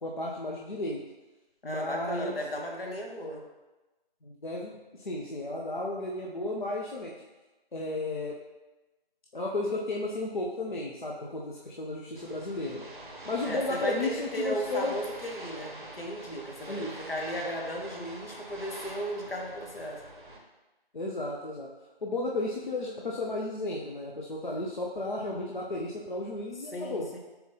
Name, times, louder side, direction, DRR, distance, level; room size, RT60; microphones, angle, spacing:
voice 1, 0.0-1.0 1.6-2.4 4.2-7.1 7.7-8.4 9.3-12.9 13.3-14.9 16.7-17.1 20.9-21.7 22.0-27.2, left 2 dB, 55° left, -2 dB, 0.5 m, -33 dB
voice 2, 1.6-3.4 13.4-20.0 26.7-27.2, equal, 70° left, 0 dB, 1.0 m, -35 dB
sound 1, 12.2-20.4, right 1 dB, 55° right, 0.7 m, -45 dB
4.1 x 3.8 x 2.7 m, 1.1 s
figure-of-eight pair, 170°, 30 cm